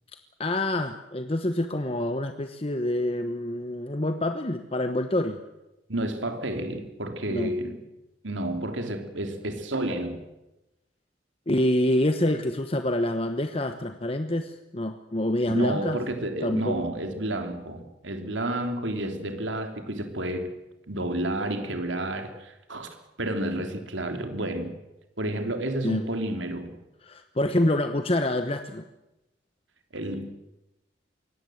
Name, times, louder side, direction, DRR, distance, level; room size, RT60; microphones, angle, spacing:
voice 1, 0.4-5.4 7.3-7.5 11.5-16.0 16.4-16.8 25.8-26.1 27.0-28.8, left 1 dB, 30° left, 8 dB, 1.0 m, -26 dB
voice 2, 5.9-7.8 8.2-10.2 15.5-20.5 20.9-22.9 23.2-24.7 25.2-26.7 29.9-30.3, right 1 dB, 85° right, 6 dB, 3.2 m, -30 dB
23.0 x 18.0 x 7.9 m, 0.96 s
head